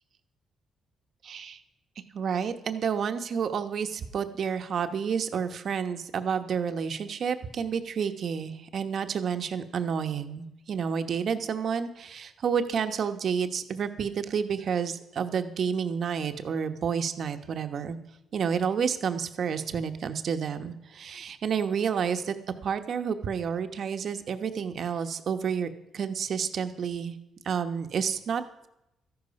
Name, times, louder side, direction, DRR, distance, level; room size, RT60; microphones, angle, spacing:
voice 1, 1.2-1.6 2.1-18.0 18.3-22.4 22.6-27.2 27.4-28.7, right 7 dB, 60° right, 7 dB, 1.1 m, -30 dB
13.5 x 11.0 x 5.3 m, 0.87 s
cardioid pair, 90°, 0 cm